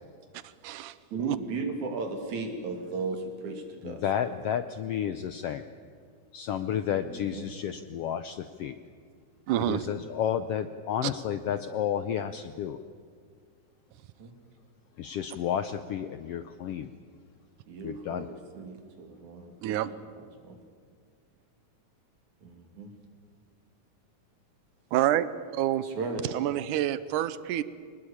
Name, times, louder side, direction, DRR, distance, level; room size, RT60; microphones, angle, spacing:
voice 1, 0.4-1.0 1.2-1.4 9.5-9.9 11.0-11.1 19.6-19.9 24.9-25.3 25.5-25.8 26.3-27.6, right 13 dB, 85° right, 15 dB, 2.3 m, -27 dB
voice 2, 1.1-4.1 6.9-7.5 14.2-14.3 17.7-19.8 20.4-20.6 22.4-22.9 25.8-26.4, right 3 dB, 70° right, 4 dB, 4.1 m, -36 dB
voice 3, 3.8-5.6 6.3-8.8 9.7-12.8 15.0-16.9 17.8-18.3, left 9 dB, 75° left, 11 dB, 1.4 m, -31 dB
24.0 x 20.0 x 8.8 m, 2.1 s
omnidirectional pair, 3.5 m